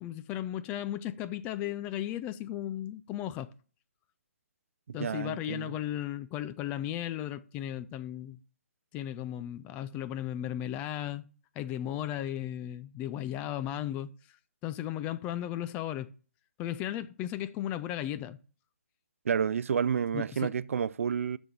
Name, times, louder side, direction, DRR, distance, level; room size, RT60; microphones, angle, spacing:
voice 1, 0.0-3.5 4.9-8.4 8.9-11.3 11.6-14.1 14.6-16.1 16.6-18.4 20.1-20.5, left 12 dB, 20° left, 0.4 m, -35 dB
voice 2, 4.9-5.7 19.2-21.4, right 7 dB, 65° right, 0.4 m, -30 dB
6.8 x 6.1 x 6.7 m
hypercardioid pair, 145°, 8 cm